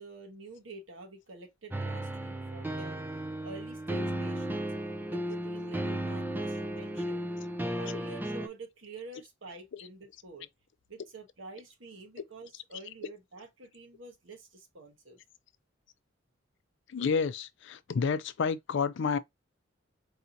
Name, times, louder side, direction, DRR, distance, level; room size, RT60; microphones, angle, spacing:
voice 1, 0.0-3.0 3.4-4.7 5.1-7.3 7.8-10.5 10.9-15.2, right 3 dB, 75° right, 1.2 m, -48 dB
sound 1, 1.7-8.5, right 1 dB, 10° right, 0.5 m, -34 dB
voice 2, 16.9-19.2, left 5 dB, 65° left, 0.4 m, -30 dB
4.7 x 2.8 x 2.5 m
head